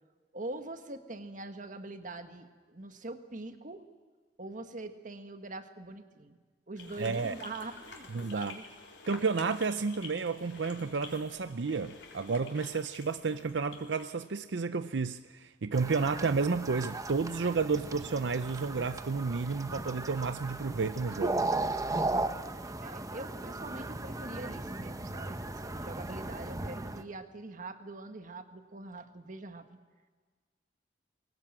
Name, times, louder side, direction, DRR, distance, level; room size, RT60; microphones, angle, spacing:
voice 1, 0.3-3.8 4.4-6.4 6.7-8.6 22.1-22.4 22.8-29.8, right 2 dB, 45° right, 1.6 m, -43 dB
sound 1, 6.8-14.1, left 4 dB, 75° left, 3.9 m, -50 dB
voice 2, 7.0-7.3 8.1-8.5 9.1-21.5, right 4 dB, 75° right, 0.6 m, -31 dB
sound 2, 15.7-27.0, right 2 dB, 20° right, 0.9 m, -36 dB
22.0 x 18.0 x 8.8 m
head